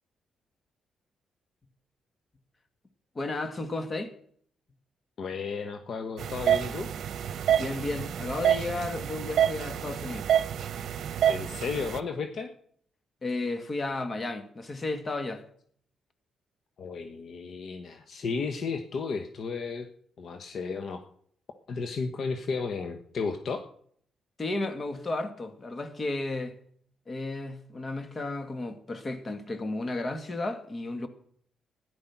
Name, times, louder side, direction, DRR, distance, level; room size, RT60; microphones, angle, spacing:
voice 1, 3.2-4.1 7.6-10.3 13.2-15.4 24.4-26.5 27.1-31.1, left 2 dB, 35° left, 2.0 m, -33 dB
voice 2, 5.2-6.9 11.3-12.5 16.8-19.9 20.2-21.0 21.7-23.6, left 5 dB, 60° left, 1.2 m, -33 dB
sound 1, 6.2-12.0, right 10 dB, 70° right, 0.8 m, -28 dB
13.5 x 10.5 x 5.9 m
cardioid pair, 70°, 0 cm